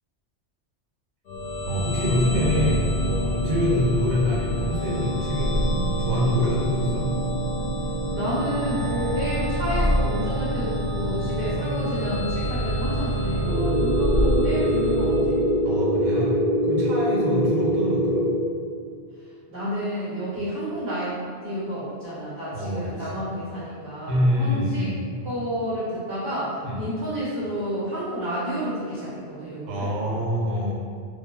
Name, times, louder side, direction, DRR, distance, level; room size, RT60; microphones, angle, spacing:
sound 1, 1.3-16.0, equal, 70° left, 0.8 m, -26 dB
voice 1, 1.7-7.1 15.6-16.3 16.6-18.3 22.5-23.2 24.1-25.0 26.6-26.8 29.7-30.7, left 1 dB, 90° right, -3 dB, 0.9 m, -25 dB
voice 2, 8.1-15.4 16.0-16.2 17.3-17.5 19.5-24.9 25.2-29.9, equal, 55° right, -10 dB, 0.8 m, -30 dB
sound 2, 13.4-18.4, equal, 10° right, 0.5 m, -23 dB
3.2 x 2.0 x 2.3 m, 2.2 s
omnidirectional pair, 1.1 m